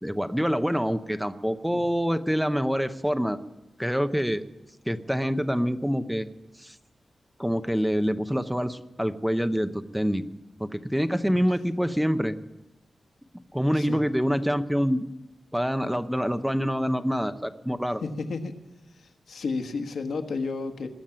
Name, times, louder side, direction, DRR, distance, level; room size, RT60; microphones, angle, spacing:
voice 1, 0.0-3.4 3.8-4.4 4.9-6.3 6.6-6.7 7.4-10.2 10.6-12.4 13.5-15.1 15.5-18.0, equal, ahead, 9 dB, 0.7 m, -26 dB
voice 2, 18.0-18.5 19.3-20.9, left 4 dB, 85° left, 6 dB, 1.5 m, -31 dB
21.5 x 7.2 x 8.9 m, 0.98 s
wide cardioid pair, 160°, 0 cm